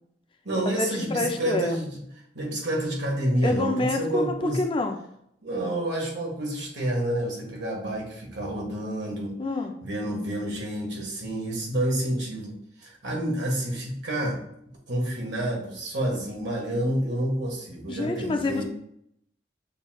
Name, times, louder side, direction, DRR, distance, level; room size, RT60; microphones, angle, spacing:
voice 1, 0.4-2.0 2.3-4.6 5.4-9.4 9.8-12.5 12.8-14.4 14.9-18.6, right 1 dB, 70° right, -2 dB, 1.5 m, -29 dB
voice 2, 1.1-1.8 3.4-5.0 9.4-9.7 17.9-18.6, left 2 dB, 30° left, 5 dB, 0.4 m, -27 dB
6.6 x 3.1 x 2.3 m, 0.72 s
head